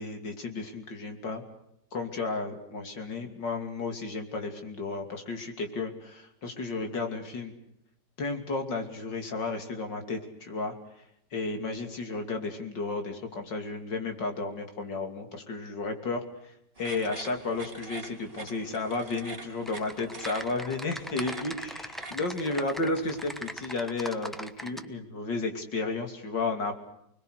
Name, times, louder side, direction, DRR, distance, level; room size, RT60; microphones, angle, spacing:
voice 1, 0.0-1.4 1.9-7.5 8.2-26.7, left 3 dB, 85° left, 5 dB, 3.5 m, -33 dB
sound 1, 16.8-23.7, right 3 dB, 30° right, 2.5 m, -46 dB
Typing, 19.6-24.8, equal, ahead, 0.7 m, -40 dB
30.0 x 21.0 x 6.6 m, 0.79 s
omnidirectional pair, 1.9 m